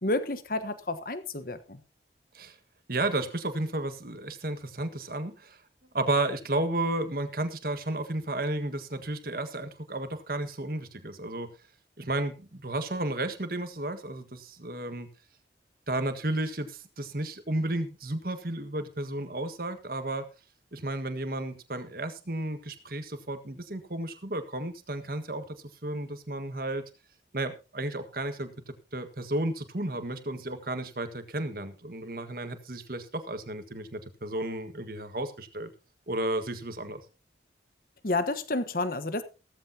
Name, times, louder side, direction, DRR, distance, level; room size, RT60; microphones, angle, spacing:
voice 1, 0.0-1.8 38.0-39.2, left 2 dB, 50° left, 11 dB, 1.2 m, -30 dB
voice 2, 2.9-5.6 5.9-11.5 12.0-15.1 15.9-20.2 20.7-25.6 25.8-26.8 27.3-35.7 36.1-37.0, right 2 dB, 50° right, 9 dB, 1.7 m, -33 dB
16.0 x 14.0 x 2.9 m, 0.31 s
head